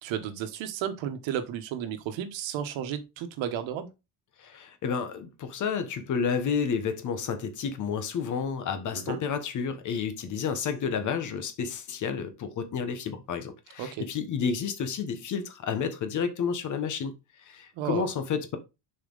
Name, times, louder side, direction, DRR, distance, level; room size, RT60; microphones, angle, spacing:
voice 1, 0.0-3.9 9.1-9.2 13.8-14.1 17.7-18.1, right 9 dB, 85° right, 1.3 m, -33 dB
voice 2, 4.4-17.1 17.4-18.6, left 6 dB, 40° left, 1.2 m, -30 dB
6.9 x 4.3 x 3.9 m
cardioid pair, 180°, 45 cm